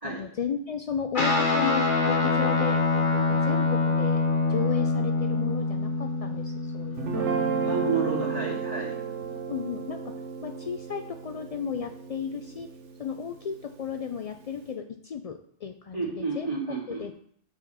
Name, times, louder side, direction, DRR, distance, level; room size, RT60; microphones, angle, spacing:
voice 1, 0.0-4.2 4.5-7.3 7.5-7.7 9.5-12.7 13.0-16.5 16.9-17.1, left 7 dB, 75° left, 6 dB, 0.3 m, -34 dB
Guitar, 1.1-8.8, left 3 dB, 45° left, 1.4 m, -26 dB
Guitar 2, 7.0-13.3, right 5 dB, 85° right, 1.2 m, -32 dB
voice 2, 7.6-9.0 15.9-17.0, right 4 dB, 30° right, -5 dB, 2.5 m, -30 dB
6.4 x 4.9 x 5.6 m, 0.63 s
omnidirectional pair, 1.2 m